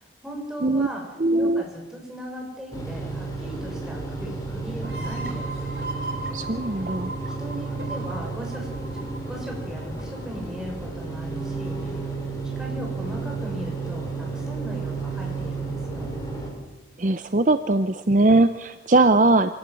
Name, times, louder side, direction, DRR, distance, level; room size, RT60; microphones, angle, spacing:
voice 1, 0.0-1.0 1.3-5.5 7.4-12.0 12.6-16.1, equal, 5° right, -1 dB, 6.3 m, -37 dB
voice 2, 1.2-1.6 6.3-7.1 17.0-19.5, right 2 dB, 45° right, 10 dB, 0.8 m, -20 dB
sound 1, 2.7-16.5, right 3 dB, 20° left, 6.2 m, -32 dB
sound 2, 4.8-10.3, right 2 dB, 65° right, 4.4 m, -37 dB
26.5 x 17.5 x 7.6 m, 1.2 s
head